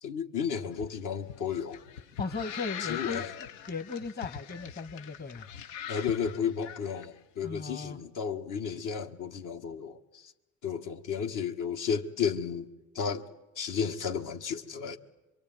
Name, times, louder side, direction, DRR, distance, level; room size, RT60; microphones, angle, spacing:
voice 1, 0.0-1.8 2.8-3.3 5.9-10.3 10.6-12.7 13.0-13.3 13.6-15.0, left 7 dB, 55° left, 1.9 m, -33 dB
sound 1, 0.7-7.1, left 9 dB, 80° left, 1.0 m, -41 dB
voice 2, 2.2-3.2 3.7-5.5 7.4-8.0, left 4 dB, 25° left, 1.6 m, -37 dB
25.0 x 23.5 x 9.3 m
hypercardioid pair, 70°, 38 cm